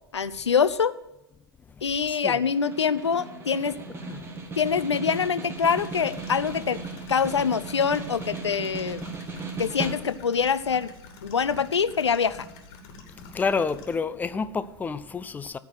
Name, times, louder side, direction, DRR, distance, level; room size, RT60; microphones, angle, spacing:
voice 1, 0.1-0.9 1.8-3.8 4.6-9.0 9.6-10.9 11.2-12.5, left 6 dB, 85° left, 0.6 m, -25 dB
voice 2, 2.1-2.4 4.1-4.2 13.1-15.6, left 5 dB, 10° left, 0.5 m, -29 dB
Snare drum, 2.4-10.4, right 3 dB, 15° right, 1.8 m, -37 dB
sound 1, 5.6-13.9, left 3 dB, 45° left, 2.6 m, -47 dB
14.0 x 4.7 x 7.8 m
hypercardioid pair, 100°, 14 cm